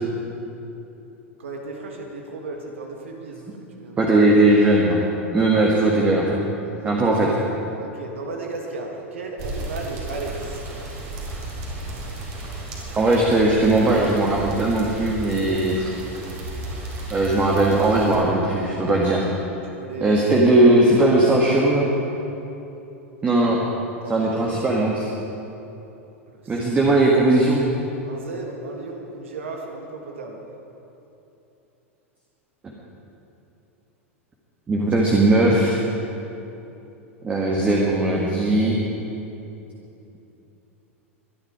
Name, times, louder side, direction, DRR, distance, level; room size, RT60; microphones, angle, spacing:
voice 1, 1.4-4.1 7.8-10.7 19.6-20.2 24.0-24.8 26.3-26.7 28.1-30.5, right 3 dB, 65° right, 2 dB, 1.7 m, -35 dB
voice 2, 4.0-5.1 5.3-6.4 6.8-7.3 13.0-15.9 17.1-19.3 20.0-21.9 23.2-23.6 24.1-25.1 26.5-27.7 34.7-35.8 37.2-38.8, right 2 dB, 20° right, -2 dB, 1.9 m, -18 dB
sound 1, 9.4-18.2, right 1 dB, 45° right, 4.0 m, -34 dB
23.5 x 11.0 x 5.0 m, 2.9 s
figure-of-eight pair, 90°, 7 cm